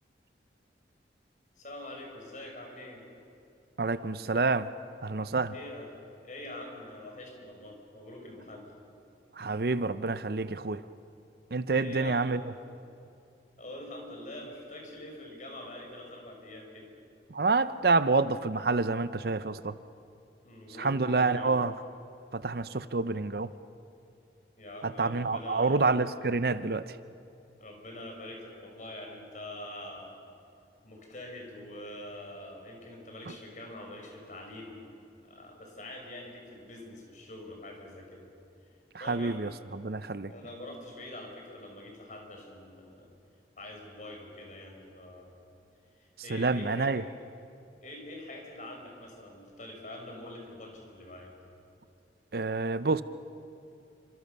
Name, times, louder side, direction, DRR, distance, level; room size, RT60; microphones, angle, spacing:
voice 1, 1.6-3.0 5.5-5.9 6.2-8.7 11.8-12.4 13.6-16.9 20.4-21.6 24.6-25.8 27.6-30.2 30.8-34.8 35.2-38.2 39.0-39.4 40.3-43.1 43.6-45.3 46.0-47.0 47.8-51.3, left 1 dB, 45° left, 1 dB, 5.7 m, -44 dB
voice 2, 3.8-4.7 5.0-5.5 9.4-10.8 11.5-12.4 17.3-19.7 20.8-21.7 22.3-23.5 24.8-26.8 38.9-40.3 46.3-47.0 52.3-53.0, right 3 dB, 55° right, 14 dB, 0.7 m, -28 dB
28.5 x 26.0 x 6.8 m, 2.7 s
head